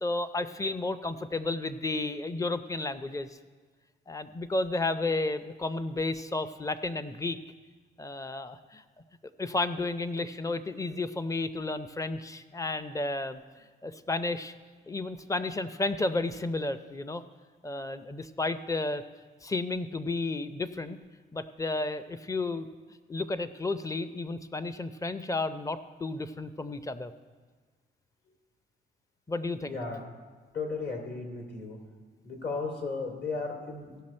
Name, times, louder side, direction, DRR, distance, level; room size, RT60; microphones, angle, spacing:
voice 1, 0.0-3.3 4.1-7.4 8.0-8.8 9.4-13.4 13.8-14.5 14.9-17.2 17.6-19.0 19.4-21.0 21.3-22.7 23.1-27.1 29.3-29.8, left 2 dB, 15° left, 12 dB, 0.6 m, -32 dB
voice 2, 29.7-30.0 30.5-31.8 32.2-34.0, left 4 dB, 55° left, 1 dB, 2.7 m, -35 dB
16.5 x 6.1 x 4.3 m, 1.4 s
cardioid pair, 90°, 20 cm